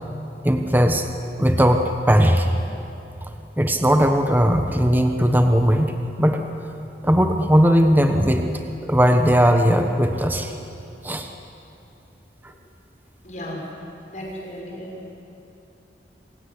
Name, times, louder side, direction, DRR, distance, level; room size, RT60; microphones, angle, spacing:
voice 1, 0.4-1.1 1.4-2.5 3.2-6.4 7.0-8.5 8.9-10.5 11.0-11.3, equal, 10° right, 5 dB, 1.2 m, -18 dB
voice 2, 13.2-13.6 14.1-14.9, equal, 45° left, -2 dB, 6.3 m, -34 dB
27.5 x 16.5 x 9.9 m, 2.9 s
head